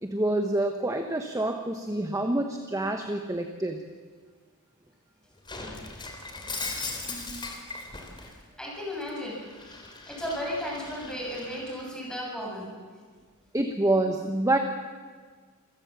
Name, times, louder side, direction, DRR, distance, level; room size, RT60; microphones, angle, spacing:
voice 1, 0.0-3.8 13.5-14.6, right 2 dB, 15° right, 5 dB, 1.2 m, -27 dB
Shatter, 5.5-8.3 8.7-11.9, left 3 dB, 20° left, 3.3 m, -39 dB
voice 2, 8.6-12.8, equal, 5° left, -4 dB, 7.2 m, -35 dB
27.5 x 15.5 x 7.4 m, 1.5 s
head